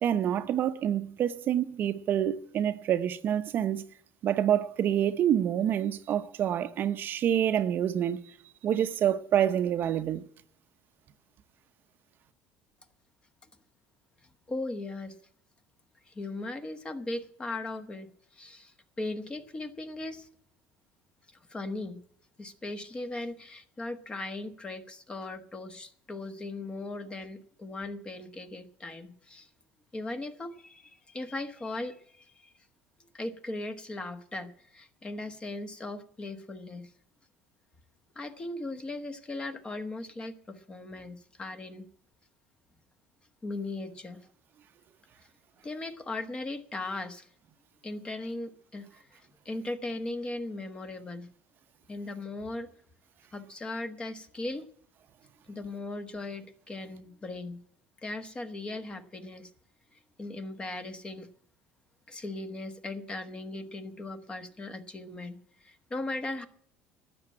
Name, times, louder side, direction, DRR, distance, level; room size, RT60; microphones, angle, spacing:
voice 1, 0.0-3.9 4.2-8.3 8.6-10.2, right 10 dB, 45° right, 0.7 m, -27 dB
voice 2, 14.5-15.2 16.0-20.3 21.5-22.0 22.4-29.5 29.9-32.5 33.1-36.9 38.1-41.9 43.4-44.2 45.6-47.3 47.8-51.3 51.9-52.7 53.3-54.6 55.5-57.6 58.0-59.5 59.9-61.3 62.1-66.5, left 2 dB, 20° left, 1.2 m, -38 dB
12.5 x 8.5 x 8.6 m
cardioid pair, 130°, 5 cm